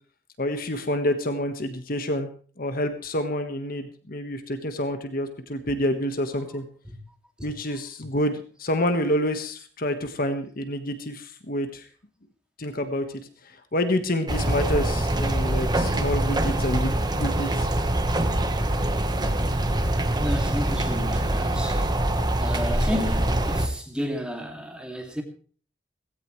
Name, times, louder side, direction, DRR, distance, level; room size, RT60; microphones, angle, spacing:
voice 1, 0.4-2.3 2.6-6.6 7.4-11.9 12.6-13.0 13.4-17.7, left 1 dB, 55° left, 1.5 m, -28 dB
sound 1, 14.3-23.7, right 1 dB, 25° right, 1.3 m, -24 dB
voice 2, 20.2-21.9 22.4-25.2, left 1 dB, 5° right, 2.5 m, -32 dB
17.0 x 16.5 x 3.2 m
head